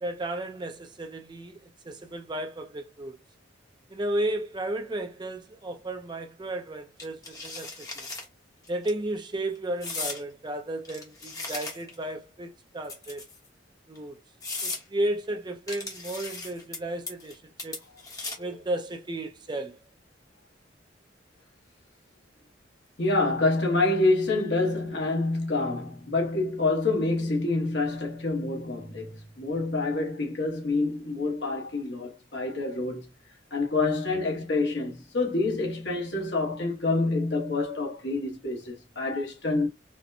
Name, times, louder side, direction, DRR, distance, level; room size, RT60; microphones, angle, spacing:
voice 1, 0.0-3.2 3.9-8.1 8.7-13.3 13.9-14.2 14.6-17.8 18.4-19.8, right 1 dB, 25° right, 0.5 m, -33 dB
sound 1, 7.0-8.3 8.7-8.9 9.8-10.2 10.8-12.0 12.8-13.5 14.0-14.1 14.4-14.8 15.7-16.8 17.1-17.3 17.6-18.5, left 3 dB, 20° left, 0.9 m, -36 dB
voice 2, 23.0-33.0 33.5-39.7, left 2 dB, 65° left, 1.1 m, -27 dB
4.3 x 2.1 x 2.6 m
head